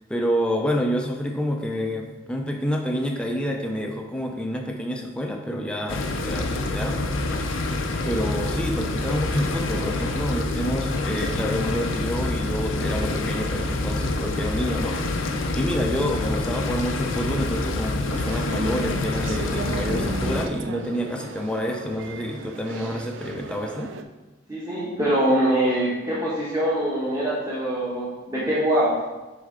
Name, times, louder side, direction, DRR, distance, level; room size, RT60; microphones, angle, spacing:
voice 1, 0.0-6.0 6.3-7.0 8.0-15.0 15.5-23.9, equal, 5° left, 1 dB, 0.5 m, -28 dB
sound 1, 5.9-20.5, left 2 dB, 90° left, 0.6 m, -27 dB
sound 2, 18.1-24.0, right 3 dB, 75° right, 0.4 m, -35 dB
voice 2, 24.5-29.0, right 1 dB, 15° right, -8 dB, 1.1 m, -23 dB
6.5 x 4.3 x 3.7 m, 1.1 s
head